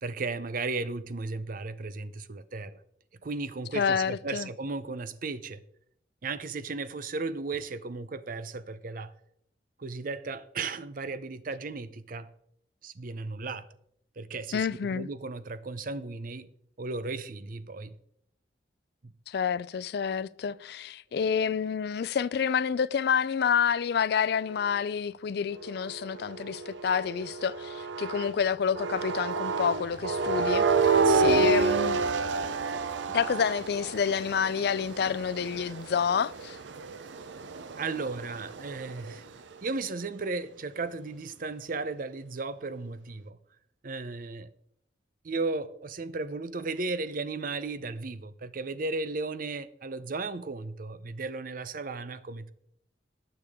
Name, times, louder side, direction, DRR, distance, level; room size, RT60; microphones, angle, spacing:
voice 1, 0.0-2.8 3.2-5.6 6.2-9.1 9.8-12.3 12.8-13.7 14.2-16.5 16.8-18.0 19.0-19.1 31.0-31.5 37.8-39.2 39.6-43.4 43.8-44.5 45.2-52.5, right 3 dB, 50° right, 0.6 m, -35 dB
voice 2, 3.7-4.5 14.5-15.1 19.3-30.6 31.2-32.0 33.1-36.6, left 7 dB, 60° left, 0.4 m, -28 dB
sound 1, 25.5-28.4 28.8-39.2, right 4 dB, 90° right, 0.6 m, -29 dB
18.5 x 6.8 x 3.6 m
head